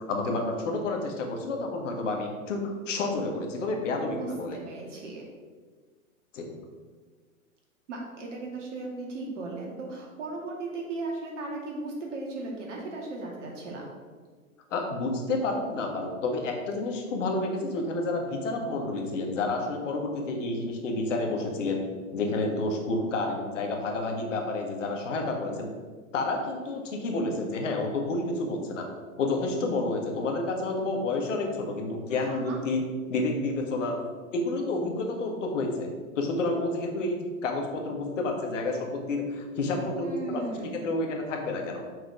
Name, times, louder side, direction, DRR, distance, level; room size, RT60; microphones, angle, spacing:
voice 1, 0.1-4.6 6.3-6.5 14.7-21.8 22.1-25.7 26.1-28.9 29.2-32.8 33.1-34.0 34.3-35.9 36.1-41.8, left 2 dB, 60° left, 2 dB, 1.7 m, -30 dB
voice 2, 4.1-5.2 7.9-13.8 32.1-32.6 40.0-40.8, right 2 dB, 55° right, -1 dB, 2.4 m, -36 dB
6.4 x 4.6 x 6.0 m, 1.5 s
figure-of-eight pair, 115°, 43 cm